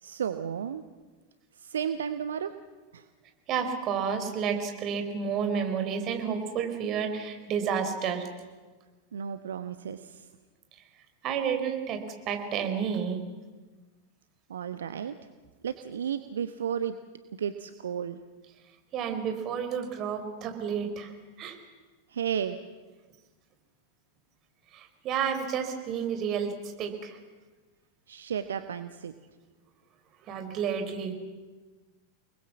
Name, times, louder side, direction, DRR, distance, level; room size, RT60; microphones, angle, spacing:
voice 1, 0.0-0.8 1.5-2.5 2.9-3.1 9.1-10.3 14.5-15.2 15.6-17.0 17.4-18.2 22.1-22.6 28.1-29.1, right 8 dB, 65° right, 10 dB, 0.9 m, -33 dB
voice 2, 3.5-8.3 11.2-12.0 12.3-13.2 18.9-21.1 21.4-21.6 24.7-26.5 26.8-27.2 30.3-31.1, right 7 dB, 35° right, 6 dB, 4.2 m, -30 dB
29.5 x 20.0 x 7.3 m, 1.3 s
figure-of-eight pair, 90°, 0 cm